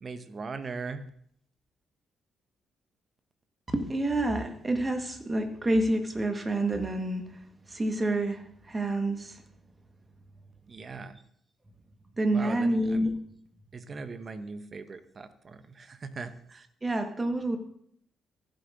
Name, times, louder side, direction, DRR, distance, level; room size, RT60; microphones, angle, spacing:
voice 1, 0.0-1.0 10.7-11.2 12.3-13.0 13.7-16.7, right 4 dB, 45° right, 12 dB, 0.9 m, -40 dB
voice 2, 3.7-7.2 7.7-9.4 12.2-13.2 16.8-17.6, right 1 dB, 25° right, 6 dB, 1.6 m, -28 dB
15.0 x 7.7 x 2.7 m, 0.65 s
hypercardioid pair, 45°, 0 cm